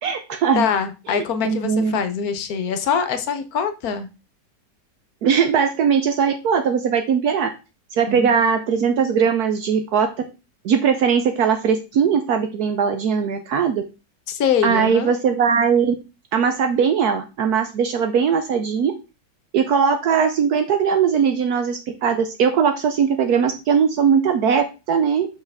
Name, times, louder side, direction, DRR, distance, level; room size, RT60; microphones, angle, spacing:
voice 1, 0.0-0.6 1.1-2.0 5.2-7.5 7.9-10.1 10.6-13.8 14.6-15.9 16.3-18.9 19.5-25.3, right 6 dB, 65° right, 6 dB, 1.1 m, -20 dB
voice 2, 0.5-4.1 8.1-8.4 14.3-15.1, left 7 dB, 65° left, 11 dB, 1.1 m, -23 dB
5.7 x 5.5 x 3.5 m, 0.29 s
omnidirectional pair, 1.9 m